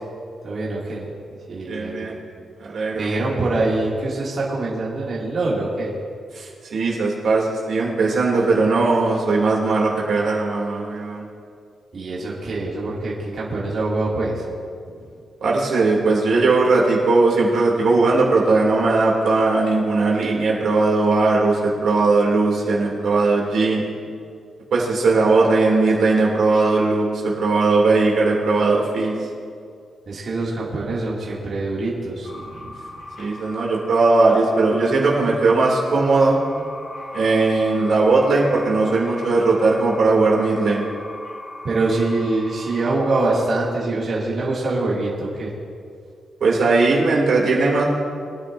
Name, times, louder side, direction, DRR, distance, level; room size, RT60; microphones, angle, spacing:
voice 1, 0.4-1.1 1.5-2.1 2.9-6.0 11.9-14.4 14.9-15.0 30.1-32.9 41.6-45.5, right 2 dB, 45° right, -6 dB, 2.5 m, -24 dB
voice 2, 1.7-2.1 2.6-3.1 6.3-11.2 15.4-23.9 24.7-29.1 33.2-36.4 37.1-40.8 46.4-47.9, right 3 dB, 70° right, -3 dB, 2.7 m, -18 dB
sound 1, 32.2-43.6, left 2 dB, 75° left, 2.4 m, -38 dB
23.0 x 10.0 x 2.7 m, 2.3 s
wide cardioid pair, 130°, 0 cm